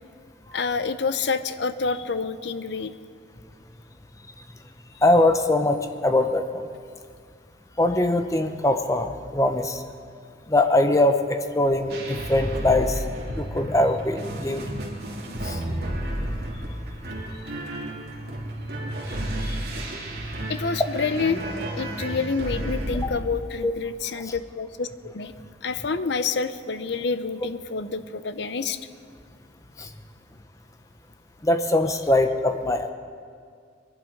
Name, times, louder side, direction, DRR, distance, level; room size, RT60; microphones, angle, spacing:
voice 1, 0.5-2.9 20.5-21.4 21.7-25.3 25.6-28.8, left 4 dB, 65° left, 12 dB, 0.6 m, -28 dB
voice 2, 5.0-5.8 6.0-6.6 7.8-9.8 10.5-13.0 13.4-14.7 15.4-15.6 19.4-19.6 23.6-23.7 24.1-24.3 29.8-29.9 31.4-32.9, left 2 dB, 15° left, 7 dB, 0.7 m, -22 dB
sound 1, 11.9-23.1, right 1 dB, 55° right, 2.6 m, -32 dB
22.0 x 11.0 x 5.2 m, 2.2 s
head